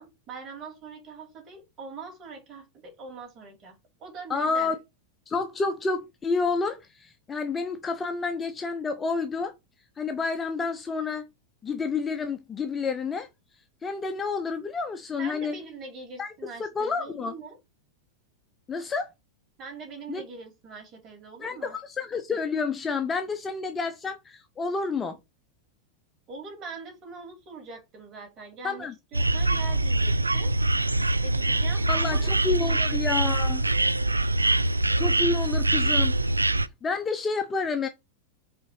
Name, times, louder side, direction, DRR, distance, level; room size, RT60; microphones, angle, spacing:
voice 1, 0.0-4.8 15.2-17.6 19.6-21.8 26.3-30.5 31.2-32.9, right 4 dB, 30° right, 3.8 m, -42 dB
voice 2, 4.3-4.7 5.3-9.5 10.0-11.3 11.6-13.3 13.8-15.6 16.2-16.3 16.6-17.3 18.7-19.1 20.1-20.2 21.4-25.2 28.6-28.9 31.9-33.6 35.0-36.2 36.8-37.9, left 4 dB, 20° left, 0.8 m, -29 dB
sound 1, 29.1-36.7, right 2 dB, 80° right, 0.4 m, -24 dB
5.5 x 4.5 x 4.5 m
figure-of-eight pair, 90°, 0 cm